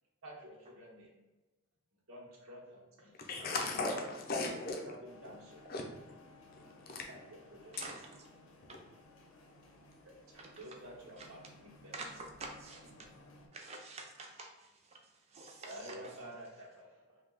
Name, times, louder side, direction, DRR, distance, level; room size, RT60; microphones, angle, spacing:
voice 1, 0.2-1.1 2.1-3.5 3.9-4.0 4.5-5.7 7.1-7.2 7.5-8.0 10.0-11.9 12.8-13.0 15.6-17.2, equal, 85° right, -3 dB, 0.9 m, -51 dB
voice 2, 3.2-4.9 5.7-5.8 6.5-7.1 7.8-7.9 8.6-8.8, left 3 dB, 45° left, 1 dB, 0.5 m, -37 dB
Mop Recycler, 5.0-13.5, left 2 dB, 90° left, 0.6 m, -59 dB
voice 3, 7.7-8.1 10.4-10.5 11.2-11.3 11.9-12.9 13.5-16.1, right 3 dB, 30° right, 2 dB, 0.4 m, -48 dB
2.7 x 2.2 x 3.8 m, 1.1 s
head